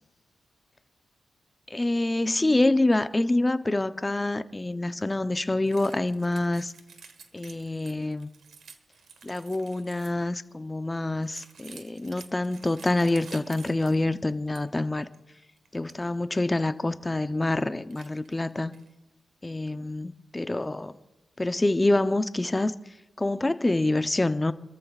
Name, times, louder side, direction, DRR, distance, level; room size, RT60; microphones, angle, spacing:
voice 1, 1.7-6.7 7.3-8.3 9.2-15.1 15.7-18.7 19.4-20.9 21.4-22.7 23.2-24.5, left 2 dB, 20° left, 0.6 m, -26 dB
sound 1, 5.6-10.3 11.2-14.8 15.0-15.2 15.6-16.0 16.5-16.6 17.2-17.6 17.9-18.9, right 6 dB, 75° right, 1.2 m, -51 dB
27.5 x 14.0 x 2.4 m
cardioid pair, 95°, 0 cm